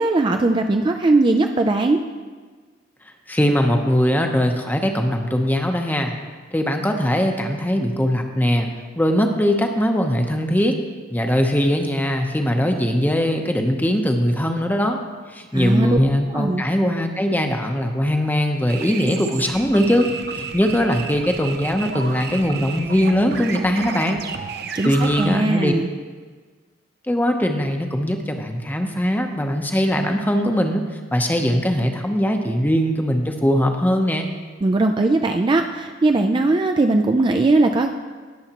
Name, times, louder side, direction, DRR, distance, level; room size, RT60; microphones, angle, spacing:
voice 1, 0.0-2.0 15.5-16.0 16.3-16.6 24.7-25.9 34.6-37.9, right 2 dB, 25° right, 5 dB, 0.3 m, -19 dB
voice 2, 3.3-6.1 6.5-8.7 9.0-10.7 11.1-15.0 15.3-20.1 20.3-24.2 24.8-25.7 27.1-30.8 31.1-34.3, equal, 10° left, 4 dB, 0.7 m, -20 dB
sound 1, 18.7-25.3, right 5 dB, 55° right, 0.7 m, -32 dB
18.5 x 7.0 x 2.9 m, 1.5 s
head